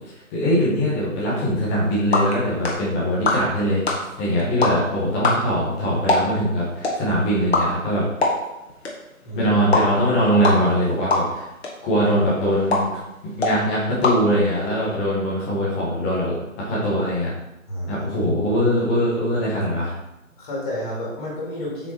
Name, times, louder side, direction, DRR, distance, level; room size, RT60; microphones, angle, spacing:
voice 1, 0.3-8.0 9.3-11.5 11.8-13.0 13.4-17.3 17.9-19.9, equal, 10° left, -7 dB, 1.1 m, -22 dB
sound 1, 1.7-15.0, left 2 dB, 50° left, 1.8 m, -27 dB
voice 2, 9.2-9.5 17.7-18.1 20.4-21.9, left 1 dB, 30° left, -5 dB, 2.9 m, -30 dB
7.0 x 5.6 x 4.3 m, 0.93 s
figure-of-eight pair, 155°, 41 cm